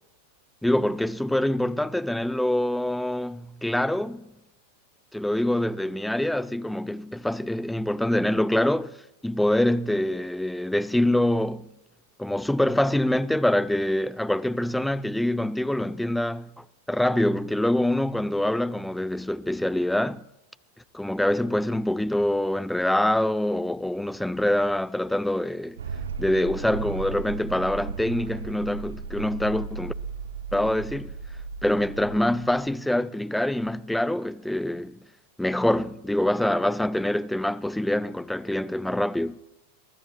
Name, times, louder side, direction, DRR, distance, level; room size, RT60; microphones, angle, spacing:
voice 1, 0.6-4.3 5.1-9.0 9.2-11.7 12.2-20.2 20.9-25.8 26.2-29.9 30.5-31.1 31.6-35.0 35.4-39.4, left 1 dB, 5° left, 0.4 m, -25 dB
sound 1, 25.8-32.6, right 5 dB, 65° right, 0.9 m, -36 dB
23.0 x 20.5 x 2.4 m
figure-of-eight pair, 90°, 0 cm